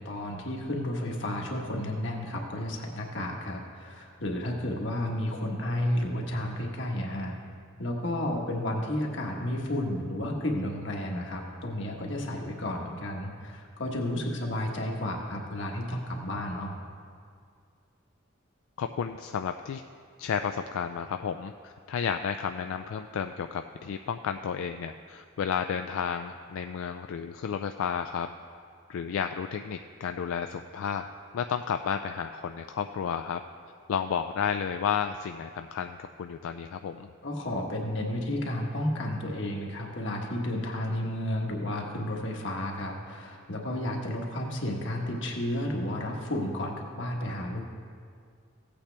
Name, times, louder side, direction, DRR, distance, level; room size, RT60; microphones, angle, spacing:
voice 1, 0.0-7.4 7.8-16.8 37.2-47.6, left 1 dB, 65° left, 0 dB, 1.4 m, -32 dB
voice 2, 18.8-19.8 20.2-28.3 28.9-31.0 31.3-33.4 33.9-37.1, left 7 dB, 85° left, 7 dB, 0.3 m, -32 dB
16.0 x 8.5 x 3.4 m, 2.2 s
head